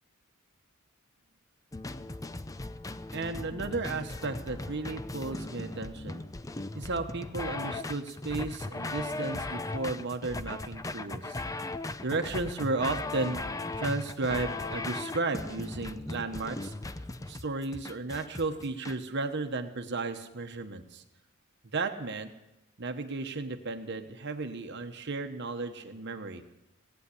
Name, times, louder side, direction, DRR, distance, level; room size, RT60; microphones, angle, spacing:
sound 1, 1.7-19.0, left 2 dB, 15° left, 0.5 m, -38 dB
voice 1, 3.1-6.2 6.7-11.4 12.0-16.7 17.3-21.0 21.7-22.3 22.8-26.4, right 3 dB, 60° right, 6 dB, 1.1 m, -34 dB
18.0 x 9.1 x 8.4 m, 0.94 s
head